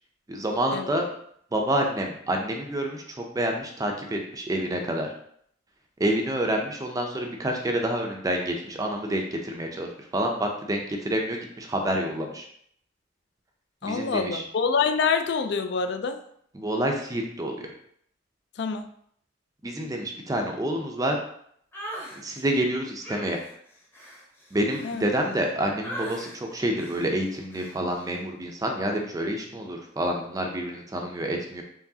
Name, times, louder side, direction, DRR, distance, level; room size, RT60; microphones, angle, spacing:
voice 1, 0.3-1.0 1.5-5.1 6.0-12.5 13.8-14.4 16.5-17.7 19.6-21.2 22.2-23.4 24.5-31.6, right 1 dB, 20° right, 2 dB, 0.4 m, -28 dB
voice 2, 13.8-16.2 18.6-18.9 24.8-25.1, left 5 dB, 65° left, 8 dB, 0.4 m, -26 dB
sound 1, 21.7-22.2 23.0-25.5 25.8-26.4 26.8-27.1 27.5-27.8, right 1 dB, 10° left, 0.8 m, -39 dB
4.6 x 3.1 x 2.7 m, 0.66 s
head